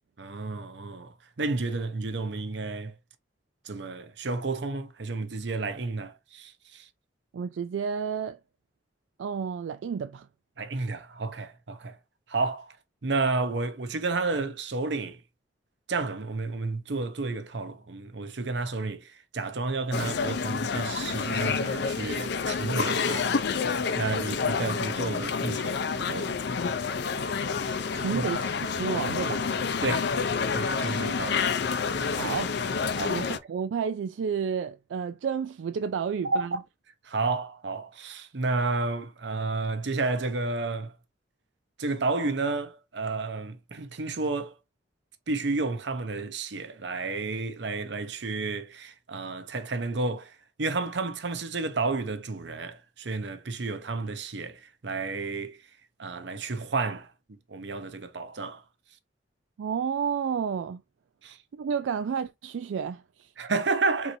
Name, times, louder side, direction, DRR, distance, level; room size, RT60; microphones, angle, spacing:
voice 1, 0.2-2.9 3.6-6.9 10.6-12.0 12.3-12.8 13.0-15.2 15.9-23.3 23.7-26.4 28.1-28.3 29.8-30.1 30.5-31.4 33.0-33.2 36.2-36.6 37.0-40.9 41.8-44.6 45.3-55.6 56.0-57.1 57.5-58.6 61.2-61.4 63.4-64.2, right 3 dB, 65° right, 0.7 m, -31 dB
voice 2, 7.3-8.4 9.2-10.3 27.9-29.4 32.1-32.5 33.1-36.5 59.6-60.8 61.5-63.3, right 6 dB, 85° right, 0.3 m, -31 dB
sound 1, 19.9-33.4, left 5 dB, 65° left, 0.5 m, -28 dB
4.5 x 3.9 x 2.7 m
head